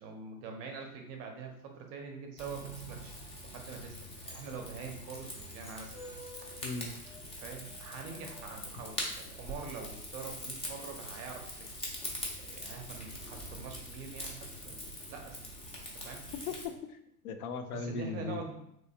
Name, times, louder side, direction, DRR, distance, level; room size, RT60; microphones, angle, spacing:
voice 1, 0.0-4.0 4.2-6.5 7.4-11.7 12.4-14.7 15.1-15.4 15.9-16.2 17.7-18.5, right 5 dB, 35° right, 3 dB, 0.6 m, -45 dB
Rain / Fire, 2.4-16.7, left 1 dB, 15° left, 0.6 m, -43 dB
voice 2, 16.5-17.0 17.2-18.5, left 5 dB, 70° left, 8 dB, 0.5 m, -38 dB
3.1 x 3.0 x 2.7 m, 0.76 s
hypercardioid pair, 105°, 46 cm